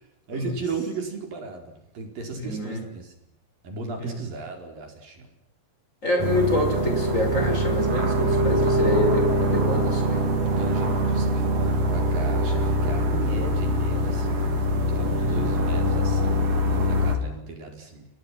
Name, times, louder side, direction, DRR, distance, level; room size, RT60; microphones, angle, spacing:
voice 1, 0.3-3.3 3.6-5.3 10.6-14.6 14.9-18.1, right 4 dB, 70° right, 4 dB, 6.5 m, -36 dB
voice 2, 2.4-2.8 4.0-4.2 6.0-10.3 15.2-15.5, left 1 dB, 20° left, 4 dB, 6.0 m, -27 dB
sound 1, 6.2-17.2, equal, 45° right, 4.3 m, -23 dB
29.5 x 28.5 x 6.0 m, 0.78 s
omnidirectional pair, 4.2 m